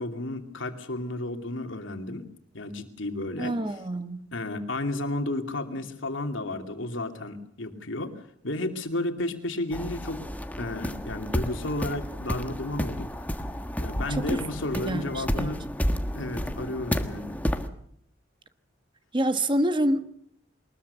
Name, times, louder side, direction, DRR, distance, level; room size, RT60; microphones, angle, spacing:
voice 1, 0.0-2.2 2.5-3.6 4.3-10.2 10.6-13.3 13.8-15.6 16.1-17.4, left 2 dB, 80° left, 2.7 m, -32 dB
voice 2, 3.4-4.2 14.1-14.4 14.7-15.6 15.9-16.0 19.1-20.1, right 1 dB, 25° right, 1.4 m, -27 dB
sound 1, 9.7-17.7, equal, 10° left, 1.4 m, -31 dB
23.0 x 20.5 x 7.0 m
head